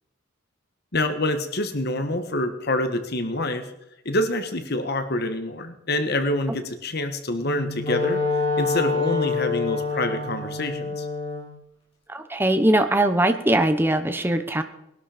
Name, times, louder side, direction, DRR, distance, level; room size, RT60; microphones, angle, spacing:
voice 1, 0.9-3.7 4.0-8.2 8.6-11.1, left 1 dB, 50° left, 7 dB, 1.6 m, -26 dB
Wind instrument woodwind instrument, 7.4-11.5, left 4 dB, 30° left, 5.4 m, -26 dB
voice 2, 12.1-14.6, right 1 dB, 10° right, 8 dB, 0.9 m, -21 dB
20.5 x 12.5 x 5.1 m, 0.85 s
head